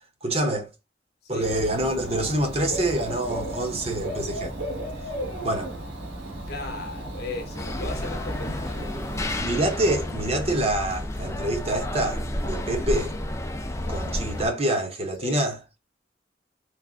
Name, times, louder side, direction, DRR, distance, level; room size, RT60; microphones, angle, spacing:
voice 1, 0.2-0.7 1.3-4.5 5.4-5.7 8.5-8.6 9.4-13.1 13.9-15.6, right 1 dB, 35° right, 0.7 m, -26 dB
Dog / Bird, 1.4-9.4, right 1 dB, 70° right, 1.3 m, -35 dB
voice 2, 6.0-9.3 15.2-15.4, left 2 dB, 60° left, 0.8 m, -37 dB
sound 1, 7.5-14.5, left 1 dB, 15° left, 0.4 m, -31 dB
3.3 x 2.5 x 2.3 m
head